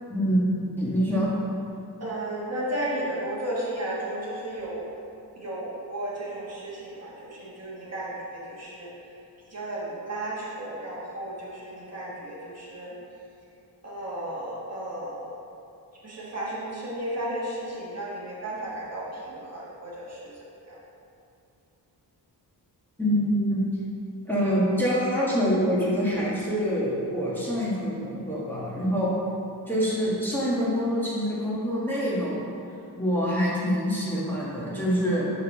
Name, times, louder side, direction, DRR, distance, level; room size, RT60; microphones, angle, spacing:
voice 1, 0.1-0.5 0.8-1.3 23.0-23.6 24.3-29.1 29.6-32.4 33.0-35.3, equal, 5° left, -8 dB, 1.4 m, -25 dB
voice 2, 2.0-4.9 5.4-8.9 9.5-12.9 13.8-15.4 16.0-20.3 20.6-20.8, right 1 dB, 40° right, -7 dB, 1.4 m, -34 dB
6.5 x 5.5 x 4.1 m, 2.7 s
wide cardioid pair, 145°, 40 cm